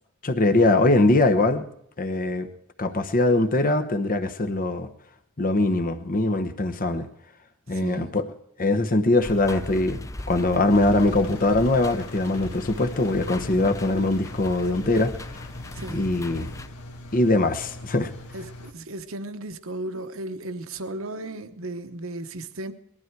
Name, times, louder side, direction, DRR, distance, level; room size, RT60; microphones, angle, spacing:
voice 1, 0.2-1.7 2.0-2.5 2.8-4.9 5.4-7.1 7.7-8.3 8.6-15.5 15.9-16.5 17.1-18.1, left 2 dB, 40° left, 1.0 m, -22 dB
voice 2, 7.7-8.2 15.7-16.1 18.3-22.7, right 2 dB, 65° right, 1.1 m, -35 dB
sound 1, 9.2-16.7, left 1 dB, 15° left, 0.5 m, -38 dB
Engine, 10.7-18.7, left 1 dB, 90° left, 1.8 m, -42 dB
20.0 x 12.5 x 4.7 m
head